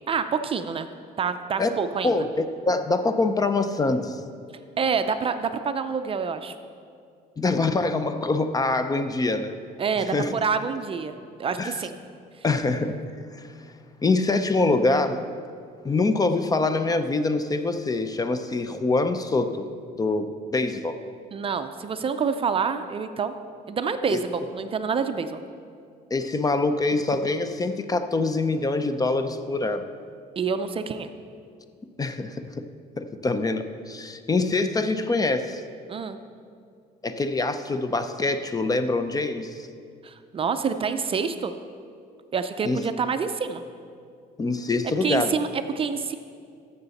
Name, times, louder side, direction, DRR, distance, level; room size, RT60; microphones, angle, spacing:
voice 1, 0.1-0.9 1.2-2.2 4.8-6.5 9.8-11.9 21.3-23.3 23.7-25.4 30.4-31.1 35.9-36.2 40.0-41.5 42.3-43.6 45.0-46.1, right 6 dB, 35° right, 9 dB, 0.5 m, -27 dB
voice 2, 2.0-4.2 7.4-9.5 10.1-10.3 11.6-11.8 12.4-13.0 13.3-13.5 14.0-15.3 15.8-19.7 20.0-20.3 20.5-21.0 24.1-24.2 26.1-29.8 32.0-32.7 33.0-35.6 37.0-39.7 42.6-42.8 44.4-45.3, left 3 dB, 20° left, 10 dB, 0.5 m, -24 dB
14.0 x 6.6 x 4.1 m, 2.3 s
cardioid pair, 110°, 17 cm